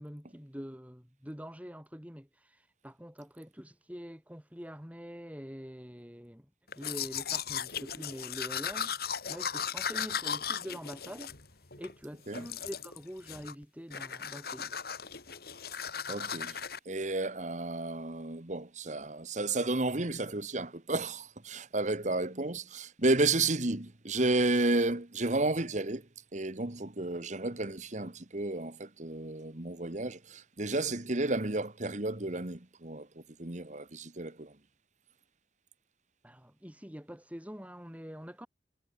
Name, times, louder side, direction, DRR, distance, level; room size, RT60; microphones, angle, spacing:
voice 1, 0.0-6.5 6.7-11.3 11.8-14.7 16.1-16.2 36.2-38.5, equal, 10° right, 4.5 m, -45 dB
Domestic sounds home sounds, 6.7-11.9 12.3-13.0 13.3-13.6 13.9-16.8, left 7 dB, 60° left, 3.6 m, -37 dB
voice 2, 15.8-16.6 16.8-34.6, right 2 dB, 40° right, 1.7 m, -32 dB
head